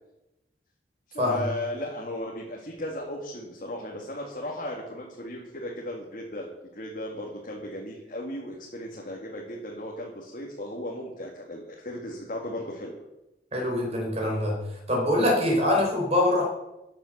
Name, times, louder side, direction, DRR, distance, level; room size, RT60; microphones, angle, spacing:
voice 1, 1.1-12.9, left 1 dB, 45° left, -2 dB, 2.1 m, -36 dB
voice 2, 13.5-14.6 14.9-16.4, left 1 dB, 35° right, -1 dB, 4.4 m, -24 dB
14.5 x 7.7 x 6.5 m, 0.94 s
head